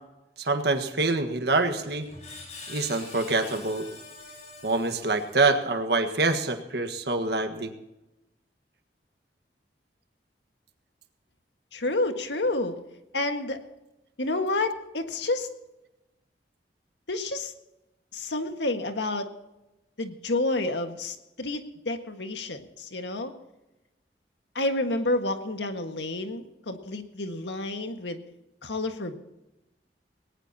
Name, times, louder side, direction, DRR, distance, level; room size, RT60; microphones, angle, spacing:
voice 1, 0.4-2.1 2.7-3.8 4.6-7.7, right 3 dB, 65° right, 6 dB, 1.6 m, -25 dB
Screech, 1.4-5.7, left 3 dB, 40° left, 5.2 m, -45 dB
voice 2, 11.7-12.8 13.1-13.6 14.2-15.5 17.1-17.5 18.1-19.3 20.0-23.3 24.5-28.2 28.6-29.2, left 2 dB, 85° left, 6 dB, 1.7 m, -29 dB
19.5 x 18.5 x 2.9 m, 0.96 s
head